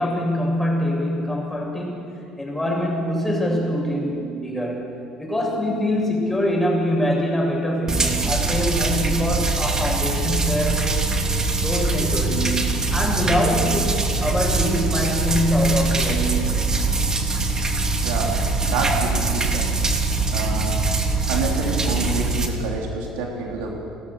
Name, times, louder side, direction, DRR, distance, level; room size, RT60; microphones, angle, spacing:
voice 1, 0.0-2.1 2.4-4.9 5.2-11.0 11.6-16.5, equal, 10° left, -1 dB, 7.0 m, -24 dB
sound 1, 7.9-22.5, right 3 dB, 25° right, 2.8 m, -23 dB
voice 2, 18.0-18.4 18.6-19.7 20.3-20.8 21.3-23.7, right 3 dB, 65° right, 1 dB, 2.9 m, -27 dB
29.5 x 13.5 x 6.9 m, 2.7 s
figure-of-eight pair, 55°, 2 cm